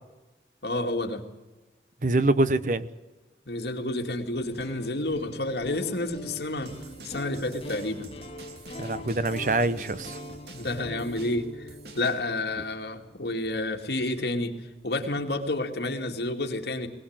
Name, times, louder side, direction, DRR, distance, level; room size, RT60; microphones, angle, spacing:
voice 1, 0.6-1.2 3.5-6.7 7.0-8.1 10.5-11.7 12.0-14.5 14.8-16.9, left 2 dB, 70° left, 4 dB, 2.5 m, -30 dB
voice 2, 2.0-2.9 8.8-10.2, right 2 dB, 45° right, 15 dB, 0.8 m, -24 dB
sound 1, 4.4-14.4, left 1 dB, 35° left, 2.6 m, -43 dB
sound 2, 6.7-12.2, right 3 dB, 70° right, 2.8 m, -48 dB
21.0 x 19.0 x 8.9 m, 1.1 s
head